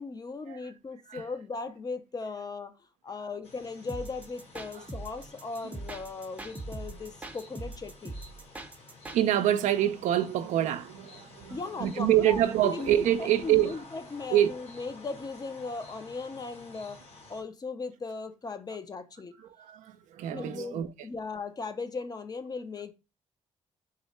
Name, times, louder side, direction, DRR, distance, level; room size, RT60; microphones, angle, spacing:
voice 1, 0.0-2.8 3.0-8.1 11.5-17.0 17.3-19.3 20.3-22.9, left 4 dB, 30° left, 0.6 m, -38 dB
sound 1, 3.4-17.4, left 3 dB, 55° left, 1.8 m, -52 dB
sound 2, 3.9-9.2, right 2 dB, 10° right, 0.6 m, -41 dB
voice 2, 9.1-13.8 14.3-14.5 19.4-20.9, right 12 dB, 75° right, 0.4 m, -26 dB
3.7 x 2.1 x 4.1 m
cardioid pair, 75°, 13 cm